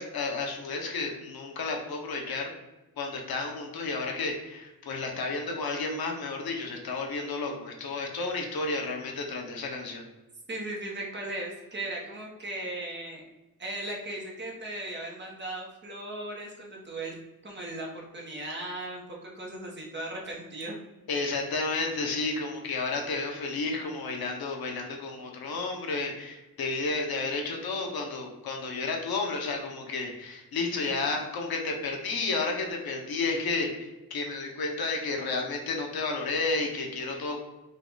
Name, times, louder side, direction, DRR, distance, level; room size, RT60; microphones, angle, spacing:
voice 1, 0.0-2.5 3.0-10.0 21.1-37.4, left 3 dB, 85° left, 2 dB, 1.0 m, -32 dB
voice 2, 10.5-13.2 13.6-17.1 17.4-20.8 30.8-30.9, right 1 dB, 30° right, -2 dB, 1.2 m, -37 dB
5.5 x 2.5 x 3.8 m, 1.0 s
wide cardioid pair, 155°, 35 cm